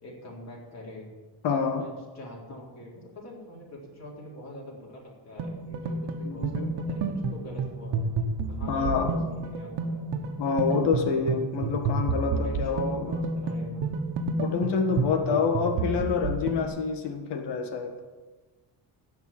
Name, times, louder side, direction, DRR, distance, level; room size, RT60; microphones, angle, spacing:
voice 1, 0.0-1.1 1.7-8.0 8.5-10.1 12.3-13.9, left 1 dB, 40° left, -3 dB, 4.4 m, -44 dB
voice 2, 1.4-1.9 6.3-6.6 8.7-9.2 10.4-13.1 14.4-17.9, left 5 dB, 70° left, 5 dB, 1.8 m, -27 dB
sound 1, 5.4-16.6, right 3 dB, 70° right, 1.5 m, -30 dB
17.0 x 5.9 x 7.6 m, 1.3 s
cardioid pair, 140°, 42 cm